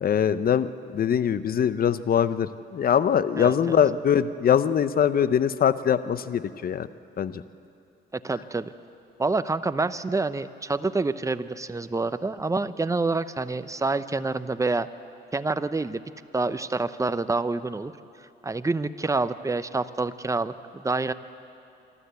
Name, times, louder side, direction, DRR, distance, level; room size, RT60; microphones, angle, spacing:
voice 1, 0.0-6.9 7.2-7.4, left 8 dB, 50° left, 14 dB, 0.7 m, -23 dB
voice 2, 3.4-3.8 8.1-8.7 9.2-14.9 15.3-16.0 16.3-17.9 18.4-21.1, right 3 dB, 15° right, 12 dB, 0.7 m, -27 dB
26.0 x 12.5 x 8.2 m, 2.7 s
cardioid pair, 90°, 20 cm